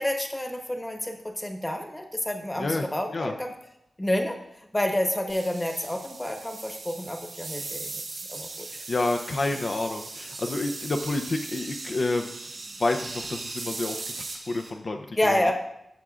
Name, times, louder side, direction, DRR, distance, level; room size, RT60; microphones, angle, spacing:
voice 1, 0.0-3.5 4.0-4.4 4.7-8.8 15.2-15.5, left 1 dB, 15° left, 3 dB, 1.1 m, -29 dB
sound 1, 5.3-14.7, right 3 dB, 80° right, 4.0 m, -38 dB
voice 2, 8.9-12.5 12.8-15.5, left 2 dB, 55° left, 4 dB, 0.5 m, -29 dB
14.0 x 7.2 x 2.4 m, 0.79 s
wide cardioid pair, 120°, 0 cm